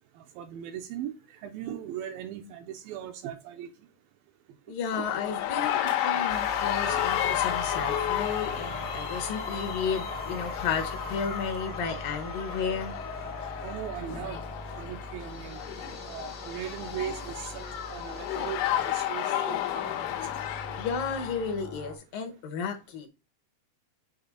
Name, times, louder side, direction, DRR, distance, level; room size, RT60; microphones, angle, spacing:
voice 1, 0.2-3.7 5.0-5.1 10.1-10.2 13.6-14.4 14.8-15.6 16.0-20.2, right 10 dB, 85° right, 2.2 m, -39 dB
voice 2, 4.7-13.0 20.8-23.1, left 6 dB, 75° left, 2.2 m, -33 dB
sound 1, 4.9-21.5, left 12 dB, 90° left, 3.1 m, -32 dB
sound 2, 6.3-21.9, left 1 dB, 50° left, 0.8 m, -40 dB
7.0 x 5.1 x 4.0 m
omnidirectional pair, 4.7 m